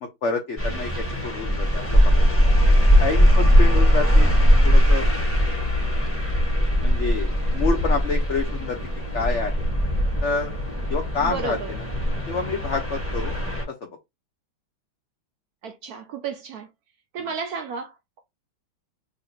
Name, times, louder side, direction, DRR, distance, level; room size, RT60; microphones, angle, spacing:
voice 1, 0.0-2.3 3.0-4.3 4.6-5.1 6.8-8.8 9.1-9.6 10.2-10.5 10.9-11.8 12.3-13.3 13.7-13.9, left 4 dB, 90° left, 0.6 m, -28 dB
sound 1, 0.6-13.6, equal, 10° left, 0.8 m, -20 dB
voice 2, 11.2-11.7 15.6-16.7 17.1-18.2, right 5 dB, 70° right, 0.9 m, -32 dB
3.1 x 2.5 x 4.4 m
omnidirectional pair, 2.1 m